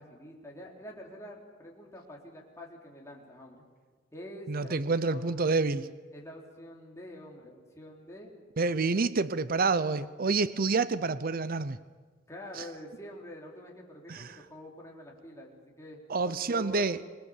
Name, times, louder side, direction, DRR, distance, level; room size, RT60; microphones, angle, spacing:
voice 1, 0.0-3.6 4.1-5.4 6.1-8.3 12.3-16.9, equal, 15° left, -2 dB, 3.8 m, -47 dB
voice 2, 4.5-5.9 8.6-11.8 12.6-12.7 14.1-14.4 16.1-17.0, right 4 dB, 50° right, 15 dB, 0.7 m, -28 dB
26.0 x 20.5 x 7.3 m, 1.5 s
head